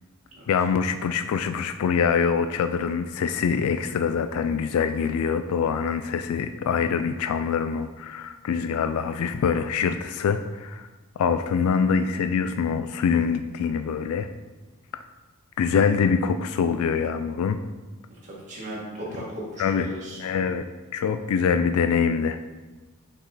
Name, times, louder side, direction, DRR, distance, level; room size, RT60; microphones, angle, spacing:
voice 1, 0.5-10.9 11.2-14.3 15.6-17.6 19.6-20.7 20.9-22.4, left 6 dB, 70° left, 9 dB, 0.3 m, -24 dB
voice 2, 18.2-20.2, right 1 dB, 35° right, -7 dB, 1.8 m, -36 dB
5.8 x 5.3 x 4.0 m, 1.2 s
head